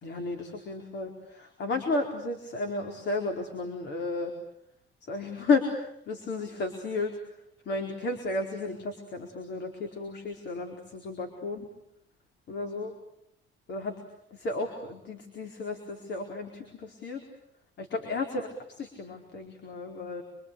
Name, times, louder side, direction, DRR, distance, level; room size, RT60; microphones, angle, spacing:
voice 1, 0.0-4.3 5.0-7.2 7.6-11.7 12.5-12.9 13.7-13.9 14.3-17.2 17.8-20.2, left 3 dB, 55° left, 4 dB, 4.5 m, -33 dB
27.0 x 26.0 x 8.4 m, 0.77 s
cardioid pair, 120°, 21 cm